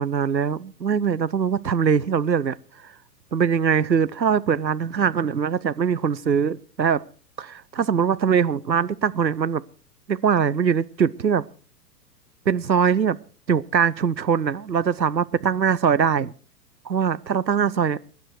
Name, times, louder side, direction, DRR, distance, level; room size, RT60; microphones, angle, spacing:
voice 1, 0.0-2.6 2.8-2.9 3.3-7.0 7.4-9.6 10.1-11.4 12.5-13.2 13.5-16.3 16.8-18.0, right 7 dB, 90° right, 0.7 m, -22 dB
22.5 x 10.0 x 4.6 m
figure-of-eight pair, 105°, 50 cm